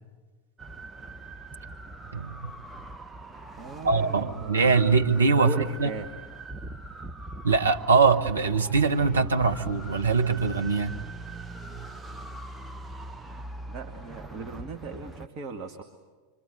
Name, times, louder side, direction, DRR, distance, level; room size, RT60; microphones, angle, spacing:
sound 1, 0.6-15.3, right 2 dB, 10° right, 1.0 m, -41 dB
voice 1, 2.1-2.5 3.8-5.9 7.4-10.9, right 4 dB, 80° right, 5 dB, 1.2 m, -22 dB
voice 2, 3.6-4.6 5.4-6.1 13.7-15.8, right 3 dB, 40° right, 4 dB, 2.0 m, -38 dB
26.5 x 25.0 x 8.3 m, 1.4 s
figure-of-eight pair, 85°, 0 cm